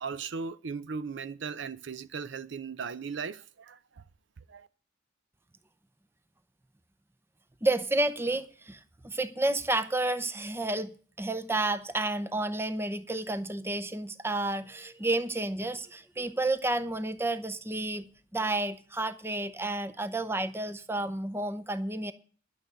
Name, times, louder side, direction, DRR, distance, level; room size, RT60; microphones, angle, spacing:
voice 1, 0.0-3.8 4.5-4.7, right 5 dB, 60° right, 0.5 m, -37 dB
voice 2, 7.6-22.1, right 2 dB, 10° right, 0.7 m, -31 dB
11.5 x 6.6 x 8.1 m
head